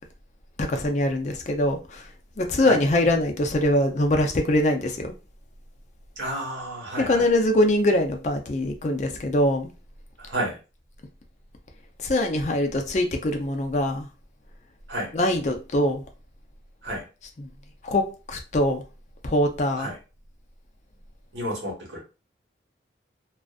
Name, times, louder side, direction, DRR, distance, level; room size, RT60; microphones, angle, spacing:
voice 1, 0.6-2.1 2.4-5.1 7.0-9.7 12.0-14.1 15.1-16.0 17.4-17.5 17.8-18.9 19.2-19.9, left 1 dB, 40° left, 0.4 m, -23 dB
voice 2, 6.2-7.3 10.2-10.6 14.9-15.1 16.8-17.1 19.8-20.0 21.3-22.0, right 1 dB, 85° right, 1.2 m, -31 dB
2.4 x 2.4 x 2.2 m
head